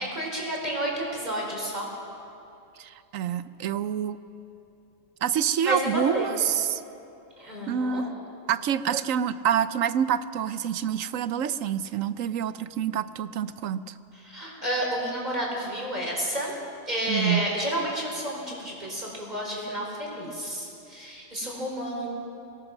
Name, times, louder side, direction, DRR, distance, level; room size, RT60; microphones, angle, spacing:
voice 1, 0.1-1.9 5.6-6.3 7.4-8.0 14.2-16.5 16.9-22.1, equal, 30° right, -2 dB, 4.7 m, -30 dB
voice 2, 2.8-4.2 5.2-6.8 7.7-8.2 8.5-13.9 17.1-17.5, right 9 dB, 75° right, 14 dB, 1.0 m, -27 dB
25.0 x 18.5 x 6.1 m, 2.7 s
omnidirectional pair, 1.4 m